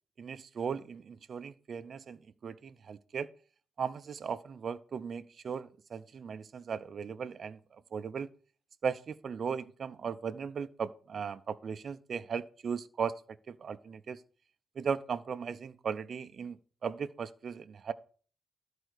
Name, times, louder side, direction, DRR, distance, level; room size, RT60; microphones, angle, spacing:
voice 1, 0.2-3.3 3.8-8.3 8.8-13.1 13.5-14.2 14.8-17.9, right 6 dB, 55° right, 0.6 m, -37 dB
12.5 x 4.6 x 6.4 m
cardioid pair, 110°, 0 cm